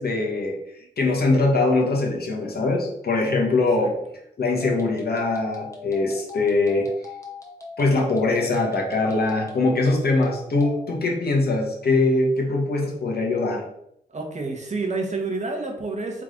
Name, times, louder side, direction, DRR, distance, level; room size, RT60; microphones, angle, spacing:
voice 1, 0.0-4.0 4.4-6.9 7.8-13.6, left 2 dB, 60° left, -1 dB, 1.3 m, -22 dB
voice 2, 3.6-3.9 14.1-16.2, right 3 dB, 40° right, 2 dB, 1.2 m, -29 dB
sound 1, 4.5-10.8, left 5 dB, 15° left, 1.4 m, -39 dB
3.7 x 3.3 x 3.8 m, 0.78 s
supercardioid pair, 50°, 18 cm